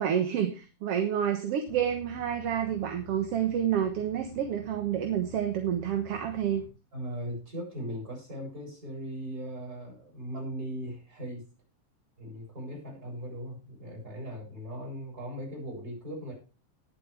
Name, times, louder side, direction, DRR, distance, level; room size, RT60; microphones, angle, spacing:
voice 1, 0.0-6.6, right 9 dB, 60° right, 5 dB, 2.1 m, -29 dB
sound 1, 1.7-6.7, equal, 85° right, 3.6 m, -49 dB
voice 2, 6.9-11.5 12.2-16.3, equal, 30° right, 0 dB, 8.0 m, -38 dB
19.5 x 7.8 x 3.4 m, 0.32 s
omnidirectional pair, 3.4 m